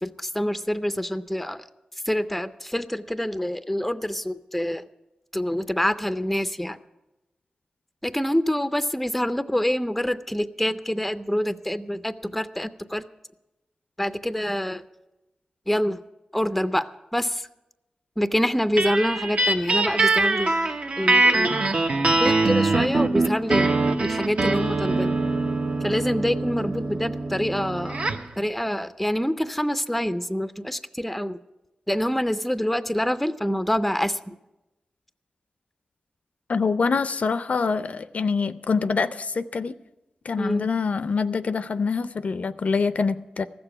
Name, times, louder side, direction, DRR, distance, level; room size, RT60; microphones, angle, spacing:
voice 1, 0.0-1.6 2.1-4.8 5.3-6.8 8.0-13.0 14.0-14.8 15.7-16.0 16.3-17.5 18.2-20.5 21.0-21.6 22.2-23.7 24.0-25.1 25.8-28.0 28.4-31.4 31.9-34.3 40.4-40.7, equal, 5° left, 0.5 m, -26 dB
sound 1, 18.8-28.3, right 2 dB, 55° right, 0.9 m, -23 dB
voice 2, 36.5-39.8 40.3-43.4, left 4 dB, 65° left, 0.4 m, -25 dB
14.5 x 6.9 x 8.7 m
wide cardioid pair, 105°, 3 cm